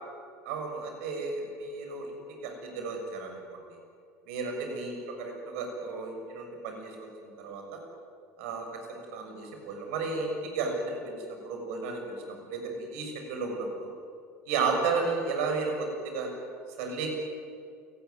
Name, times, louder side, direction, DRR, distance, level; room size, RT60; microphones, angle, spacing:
voice 1, 0.4-3.4 4.3-7.1 7.4-7.8 8.4-13.9 14.4-16.3 16.8-17.1, right 4 dB, 65° right, 3 dB, 6.7 m, -33 dB
28.5 x 18.5 x 9.5 m, 2.4 s
figure-of-eight pair, 70°, 9 cm